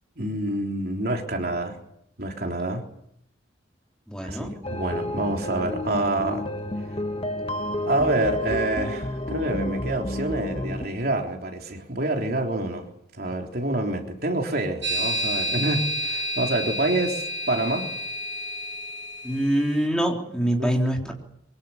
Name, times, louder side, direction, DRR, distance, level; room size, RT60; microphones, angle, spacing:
voice 1, 0.2-1.8 2.2-2.8 4.2-6.4 7.9-12.9 13.2-17.8 20.6-20.7, right 2 dB, 50° right, 2 dB, 3.5 m, -27 dB
voice 2, 4.1-4.5 19.2-21.1, right 1 dB, 5° left, 0 dB, 3.7 m, -24 dB
sound 1, 4.6-10.9, left 1 dB, 30° left, 1.8 m, -30 dB
sound 2, 14.8-19.5, equal, 80° right, 3.6 m, -29 dB
24.5 x 23.5 x 7.2 m, 0.75 s
head